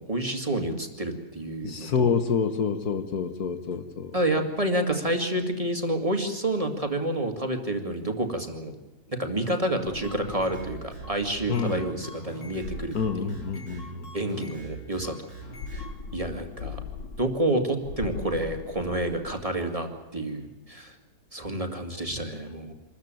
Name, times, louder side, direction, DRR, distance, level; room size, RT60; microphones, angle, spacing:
voice 1, 0.0-2.1 4.1-8.7 9.1-12.9 14.1-15.1 15.7-15.9 16.1-16.8 17.2-20.9 21.3-22.7, right 1 dB, 20° right, 5 dB, 2.1 m, -29 dB
voice 2, 1.6-4.1 11.5-11.9 12.9-14.2, left 6 dB, 60° left, 10 dB, 1.5 m, -28 dB
sound 1, 9.7-11.6 12.5-14.0 15.4-17.5 17.8-19.5, left 5 dB, 80° left, 2.1 m, -41 dB
sound 2, 10.0-15.9, right 4 dB, 45° left, 5.6 m, -43 dB
26.0 x 14.0 x 9.1 m, 1.1 s
omnidirectional pair, 1.9 m